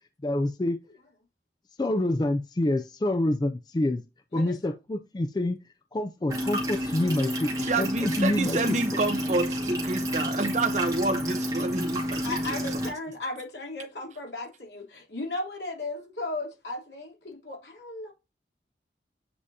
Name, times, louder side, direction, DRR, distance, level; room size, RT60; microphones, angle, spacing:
voice 1, 0.2-0.8 1.8-4.0 4.3-5.6 5.9-8.8, left 1 dB, 25° left, 0.3 m, -27 dB
voice 2, 4.3-4.8 12.2-18.1, left 2 dB, 80° left, 3.2 m, -36 dB
sound 1, 6.3-12.9, equal, 20° right, 2.2 m, -30 dB
voice 3, 7.6-12.6, right 2 dB, 40° right, 0.8 m, -29 dB
8.7 x 4.9 x 2.7 m
head